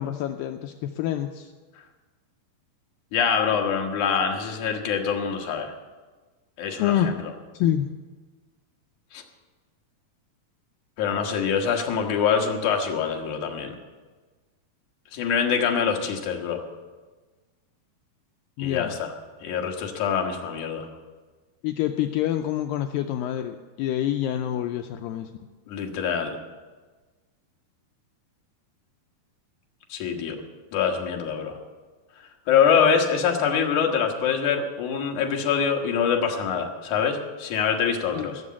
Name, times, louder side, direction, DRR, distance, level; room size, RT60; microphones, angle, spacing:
voice 1, 0.0-1.5 6.8-7.1 7.5-8.0 18.6-19.0 21.6-25.3 38.1-38.3, left 11 dB, 80° left, 7 dB, 2.1 m, -27 dB
voice 2, 3.1-5.7 6.6-6.9 9.1-9.2 11.0-13.7 15.1-16.6 18.6-19.1 19.4-20.9 25.7-26.3 29.9-30.4 30.7-31.6 32.5-38.4, left 7 dB, 60° left, 2 dB, 2.5 m, -24 dB
16.5 x 7.1 x 8.6 m, 1.3 s
omnidirectional pair, 4.4 m